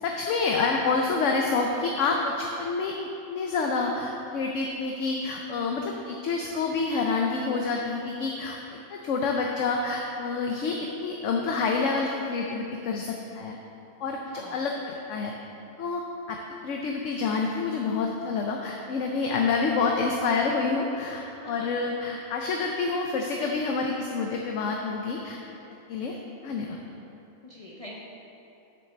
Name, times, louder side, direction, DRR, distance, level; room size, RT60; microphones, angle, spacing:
voice 1, 0.0-2.9 3.3-8.6 8.9-13.6 14.0-14.2 14.5-15.3 15.8-16.0 16.3-16.4 16.6-25.4 25.9-26.2 26.4-26.8, left 4 dB, 65° left, 1 dB, 1.0 m, -28 dB
voice 2, 14.2-14.6 21.2-21.7 27.4-28.0, equal, 30° left, -5 dB, 0.9 m, -44 dB
7.5 x 6.6 x 6.4 m, 2.8 s
omnidirectional pair, 1.5 m